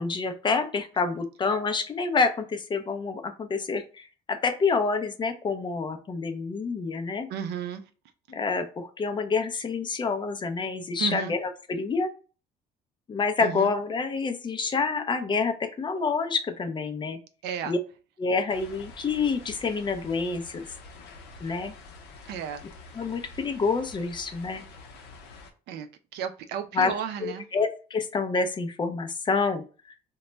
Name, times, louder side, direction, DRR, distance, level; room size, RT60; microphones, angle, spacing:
voice 1, 0.0-7.3 8.3-12.1 13.1-17.2 17.6-17.8 18.2-20.7 21.4-21.7 23.0-24.6 26.7-26.9 27.2-29.6, left 4 dB, 25° left, 0.4 m, -27 dB
voice 2, 7.3-7.8 11.0-11.3 13.4-13.7 17.4-17.7 22.3-22.6 25.7-27.5, right 8 dB, 75° right, 0.4 m, -33 dB
sound 1, 18.5-25.5, left 3 dB, 85° left, 0.6 m, -47 dB
2.2 x 2.1 x 3.8 m
cardioid pair, 110°, 17 cm